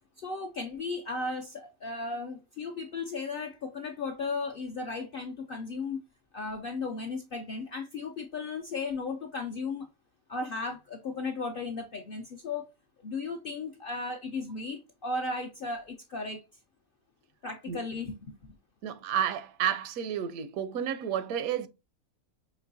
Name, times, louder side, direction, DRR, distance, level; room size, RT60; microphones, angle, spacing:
voice 1, 0.2-6.0 6.3-9.9 10.3-12.7 13.0-16.4 17.4-18.6, left 3 dB, 65° left, 0.5 m, -35 dB
voice 2, 18.8-21.7, right 9 dB, 80° right, 1.0 m, -31 dB
5.2 x 3.0 x 2.6 m
omnidirectional pair, 1.5 m